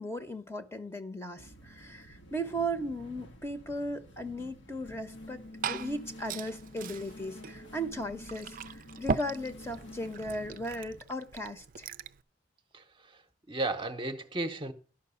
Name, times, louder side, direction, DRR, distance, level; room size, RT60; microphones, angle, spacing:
voice 1, 0.0-11.9, equal, 15° left, 1.0 m, -37 dB
sound 1, 1.4-11.0, left 1 dB, 80° left, 1.6 m, -49 dB
Glass / Fill (with liquid), 5.1-12.2, right 5 dB, 50° right, 0.5 m, -39 dB
voice 2, 12.7-13.2 13.5-14.7, right 2 dB, 30° right, 0.9 m, -34 dB
11.5 x 5.9 x 7.0 m
head